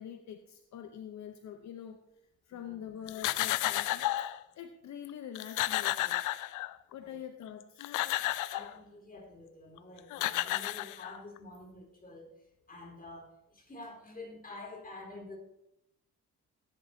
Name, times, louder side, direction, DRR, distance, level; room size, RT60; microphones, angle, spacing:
voice 1, 0.0-2.0 2.5-4.1 4.5-6.2 6.9-8.0, left 9 dB, 65° left, 7 dB, 0.9 m, -45 dB
sound 1, 3.1-4.4 5.0-5.1 5.3-6.9 7.6-8.7 9.8-9.9 10.1-11.4, left 16 dB, 85° left, 0.5 m, -32 dB
voice 2, 8.5-12.3 12.7-15.4, left 2 dB, 30° left, 0 dB, 4.1 m, -48 dB
17.5 x 10.5 x 2.8 m, 0.87 s
cardioid pair, 90°, 30 cm